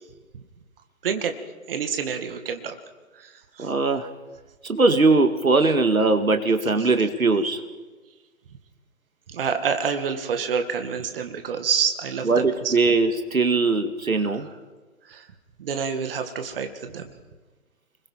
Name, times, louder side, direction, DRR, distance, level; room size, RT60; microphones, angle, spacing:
voice 1, 1.0-1.3 1.7-2.7 3.1-3.7 9.3-12.7 15.1-15.3 15.6-17.1, right 6 dB, 45° right, 7 dB, 2.3 m, -28 dB
voice 2, 3.6-4.1 4.6-7.6 12.2-14.5, right 3 dB, 85° right, 7 dB, 2.2 m, -20 dB
29.0 x 21.5 x 5.6 m, 1.3 s
figure-of-eight pair, 140°, 41 cm